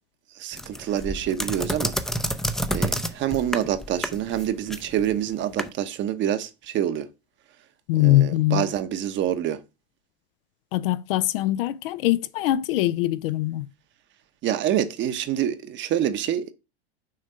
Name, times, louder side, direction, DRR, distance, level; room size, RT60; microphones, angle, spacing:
voice 1, 0.3-1.9 2.7-7.1 7.9-9.6 14.4-16.5, right 10 dB, 35° right, 1.0 m, -26 dB
sound 1, 0.5-5.7, equal, ahead, 0.6 m, -29 dB
voice 2, 7.9-8.6 10.7-13.7, left 16 dB, 55° left, 0.6 m, -22 dB
6.5 x 3.5 x 5.5 m
hypercardioid pair, 95°, 33 cm